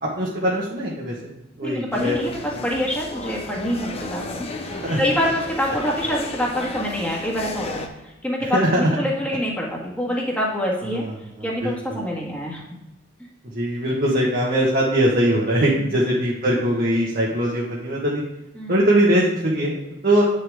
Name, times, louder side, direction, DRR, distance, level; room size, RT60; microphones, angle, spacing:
voice 1, 0.0-1.3 1.6-2.2 2.5-2.6 4.7-5.0 8.4-8.9 10.9-11.1 11.6-12.0 13.5-18.2 18.7-19.8 20.0-20.2, right 1 dB, 50° right, -5 dB, 1.4 m, -21 dB
voice 2, 1.6-11.0 11.4-12.6 18.5-18.8, equal, 5° left, -3 dB, 1.7 m, -26 dB
sound 1, 1.9-7.9, left 2 dB, 30° left, 0.8 m, -33 dB
9.2 x 6.7 x 3.6 m, 0.98 s
head